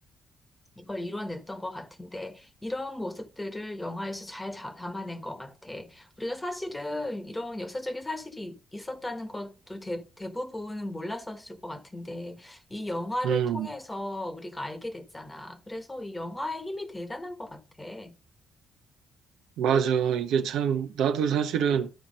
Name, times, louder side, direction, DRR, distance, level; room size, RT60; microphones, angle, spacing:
voice 1, 0.8-18.2, left 1 dB, 15° left, 1.3 m, -36 dB
voice 2, 13.2-13.7 19.6-21.9, right 8 dB, 85° right, 1.0 m, -25 dB
11.5 x 4.5 x 5.1 m
cardioid pair, 90°, 0 cm